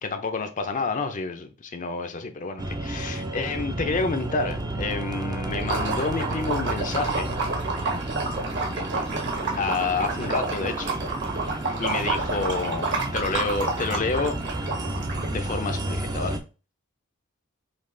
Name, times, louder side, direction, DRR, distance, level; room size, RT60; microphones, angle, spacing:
voice 1, 0.0-7.4 9.6-11.0 11.8-14.4 15.3-16.4, left 4 dB, 35° left, 0.5 m, -29 dB
sound 1, 2.6-16.4, right 1 dB, 20° right, 0.4 m, -32 dB
Liquid, 5.6-15.5, right 3 dB, 55° right, 1.2 m, -30 dB
5.2 x 2.3 x 3.7 m
head